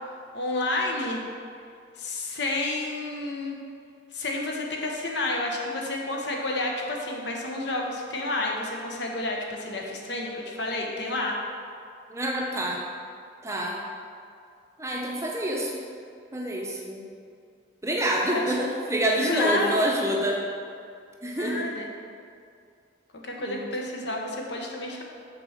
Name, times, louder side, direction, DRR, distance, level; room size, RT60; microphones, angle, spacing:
voice 1, 0.3-1.2 2.0-3.6 4.1-11.4 18.3-18.9 19.1-19.9 21.4-21.9 23.2-25.0, left 2 dB, 65° left, -1 dB, 1.0 m, -30 dB
voice 2, 12.1-12.8 13.4-13.8 14.8-15.8 16.3-17.1 17.8-20.4 21.2-21.7 23.4-23.6, right 1 dB, 15° right, -1 dB, 0.7 m, -27 dB
6.4 x 4.2 x 6.5 m, 2.4 s
head